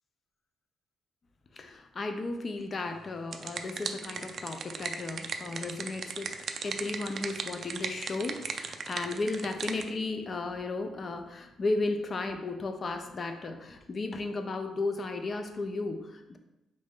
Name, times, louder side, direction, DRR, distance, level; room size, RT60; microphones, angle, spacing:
voice 1, 1.5-6.3 6.6-16.4, left 3 dB, 40° left, 7 dB, 0.5 m, -34 dB
sound 1, 3.0-9.9, right 5 dB, 50° right, 0.3 m, -38 dB
4.0 x 3.1 x 3.6 m, 0.95 s
cardioid pair, 90°, 0 cm